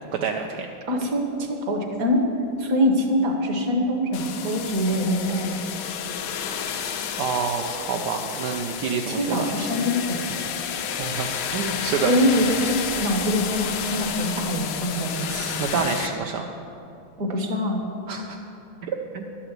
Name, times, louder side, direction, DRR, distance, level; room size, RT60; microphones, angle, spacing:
voice 1, 0.1-0.7 7.1-9.5 11.0-12.1 15.6-16.5 18.1-18.4 18.8-19.3, right 6 dB, 70° right, 2 dB, 1.0 m, -28 dB
voice 2, 0.9-2.3 2.6-5.5 9.1-10.2 12.0-15.6 17.2-17.8, equal, 50° right, 3 dB, 1.4 m, -24 dB
sound 1, 4.1-16.1, left 7 dB, 70° left, 0.8 m, -31 dB
11.5 x 5.9 x 8.0 m, 2.8 s
omnidirectional pair, 2.2 m